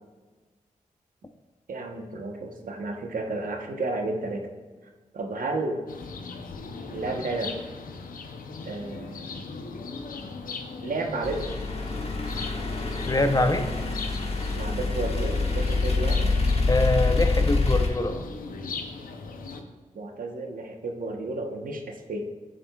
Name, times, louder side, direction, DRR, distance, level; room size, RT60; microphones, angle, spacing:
voice 1, 1.7-4.5 5.1-5.8 6.9-7.5 8.6-9.4 10.8-11.4 14.5-16.3 19.9-22.2, right 2 dB, 80° right, 3 dB, 1.0 m, -32 dB
sound 1, 5.9-19.6, left 4 dB, 90° left, 0.7 m, -38 dB
sound 2, 11.2-17.9, left 3 dB, 45° left, 1.4 m, -26 dB
voice 2, 13.0-13.7 16.7-18.3, left 2 dB, 25° left, 7 dB, 0.7 m, -24 dB
10.5 x 7.5 x 2.4 m, 1.4 s
cardioid pair, 50°, 14 cm